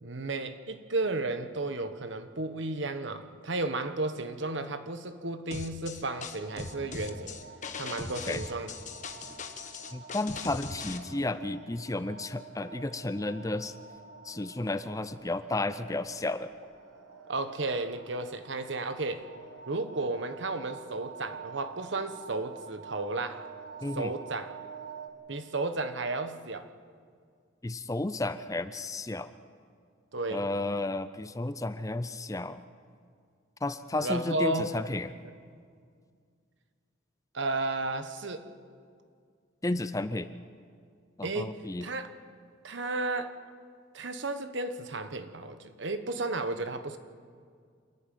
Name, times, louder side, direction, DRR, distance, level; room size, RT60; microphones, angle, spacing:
voice 1, 0.0-7.4 7.8-8.7 17.3-19.3 19.7-23.4 23.9-24.5 25.3-26.7 30.1-30.5 34.0-34.7 37.3-38.5 41.2-41.5 41.8-42.1 42.6-43.4 43.9-47.0, right 2 dB, 65° right, 9 dB, 1.2 m, -33 dB
sound 1, 5.5-11.0, left 4 dB, 35° left, 1.2 m, -39 dB
sound 2, 6.3-25.1, right 6 dB, 85° right, 1.7 m, -48 dB
voice 2, 9.9-13.7 14.2-16.5 23.8-24.1 27.6-29.3 30.3-32.6 33.6-35.1 39.6-40.3 41.2-41.9, left 2 dB, 15° left, 12 dB, 0.5 m, -32 dB
28.0 x 11.0 x 9.3 m, 2.1 s
head